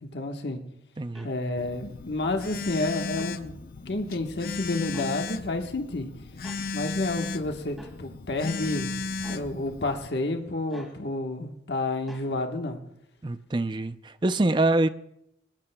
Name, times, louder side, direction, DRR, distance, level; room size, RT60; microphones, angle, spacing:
voice 1, 0.0-0.6 1.2-3.6 3.9-6.1 6.7-8.9 9.3-12.8, left 2 dB, 65° left, 4 dB, 1.3 m, -30 dB
voice 2, 1.0-1.3 13.2-14.9, right 2 dB, 25° right, 12 dB, 0.5 m, -25 dB
sound 1, 1.1-1.3 3.1-3.4 4.9-5.1 6.4-6.6 7.8-8.0 9.2-9.5 10.7-11.0 12.1-12.3, equal, ahead, 2.2 m, -46 dB
Telephone, 1.6-10.1, left 3 dB, 50° left, 0.6 m, -35 dB
22.5 x 19.5 x 2.3 m, 0.77 s
head